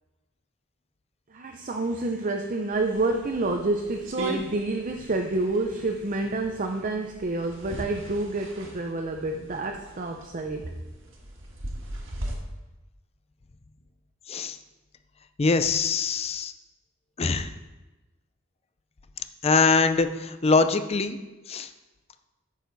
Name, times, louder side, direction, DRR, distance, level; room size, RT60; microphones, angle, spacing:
voice 1, 1.3-10.7, right 2 dB, 40° right, 3 dB, 0.6 m, -28 dB
sound 1, 2.7-12.3, right 1 dB, 65° right, 1.6 m, -39 dB
voice 2, 15.4-16.5 17.2-17.5 19.4-21.2 21.5-21.7, left 4 dB, 30° left, 11 dB, 0.5 m, -23 dB
9.7 x 6.6 x 4.0 m, 1.1 s
head